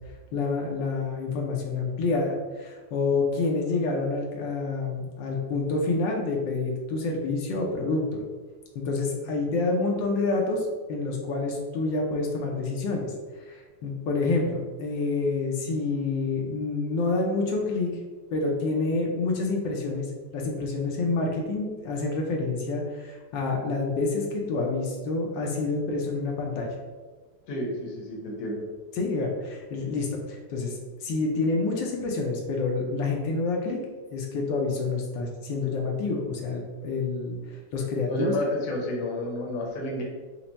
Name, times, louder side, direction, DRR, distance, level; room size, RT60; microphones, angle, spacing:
voice 1, 0.3-8.2 8.7-13.1 13.4-18.0 18.3-26.7 29.0-33.8 34.1-38.3, left 3 dB, 80° left, 0 dB, 1.3 m, -28 dB
voice 2, 27.5-28.6 38.1-40.0, left 1 dB, 55° left, -1 dB, 1.1 m, -30 dB
4.4 x 2.0 x 3.9 m, 1.3 s
omnidirectional pair, 2.0 m